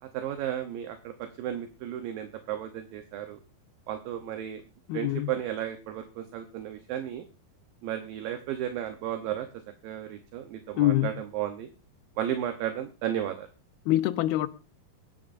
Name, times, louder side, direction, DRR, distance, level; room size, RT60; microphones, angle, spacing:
voice 1, 0.0-3.4 3.9-4.6 4.9-7.2 7.8-9.5 9.8-11.7 12.2-13.5, right 11 dB, 70° right, 2.6 m, -34 dB
voice 2, 4.9-5.3 10.8-11.1 13.9-14.5, left 14 dB, 80° left, 2.7 m, -24 dB
23.0 x 11.0 x 2.6 m
omnidirectional pair, 4.5 m